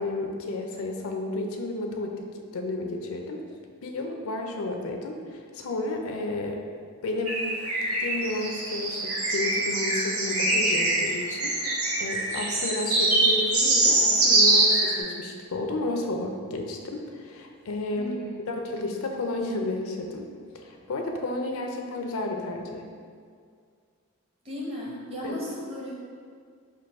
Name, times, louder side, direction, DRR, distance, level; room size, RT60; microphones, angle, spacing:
voice 1, 0.0-2.3 2.5-3.4 3.8-6.6 7.0-7.4 8.0-18.2 18.5-20.3 20.5-22.9 25.2-25.4, left 2 dB, 75° left, 3 dB, 0.5 m, -32 dB
sound 1, 7.2-15.0, right 2 dB, 80° right, 0.8 m, -24 dB
voice 2, 18.0-18.4 24.4-25.9, equal, 25° right, -5 dB, 0.8 m, -35 dB
3.8 x 2.6 x 4.6 m, 2.1 s
head